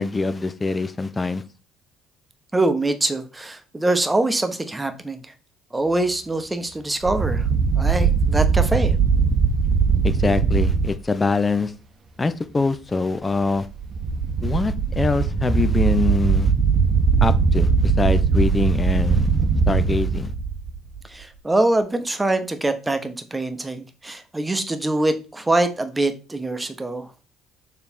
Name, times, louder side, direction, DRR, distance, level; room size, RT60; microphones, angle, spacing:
voice 1, 0.0-1.4 10.0-11.7 12.2-13.7 14.4-16.5 17.2-19.3 19.7-20.3, left 3 dB, 25° left, 12 dB, 0.7 m, -24 dB
voice 2, 2.5-5.2 5.7-7.5 7.8-8.9 21.1-27.1, right 2 dB, 15° right, 8 dB, 1.1 m, -24 dB
sound 1, 7.0-10.9 13.7-21.0, right 5 dB, 40° right, 1.0 m, -20 dB
6.9 x 3.3 x 4.4 m, 0.33 s
hypercardioid pair, 55°, 0 cm